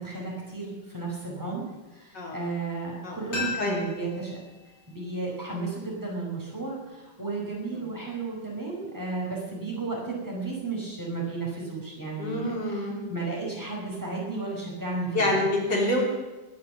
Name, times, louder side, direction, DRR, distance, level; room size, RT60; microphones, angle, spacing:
voice 1, 0.0-1.6 1.9-4.4 4.9-15.4, right 3 dB, 10° right, -3 dB, 4.5 m, -33 dB
sound 1, 3.3-6.1 6.4-6.5, left 4 dB, 80° left, 5.8 m, -38 dB
voice 2, 12.2-13.0 15.1-16.0, left 1 dB, 65° left, -3 dB, 4.5 m, -26 dB
21.5 x 7.4 x 7.2 m, 1.1 s
omnidirectional pair, 2.0 m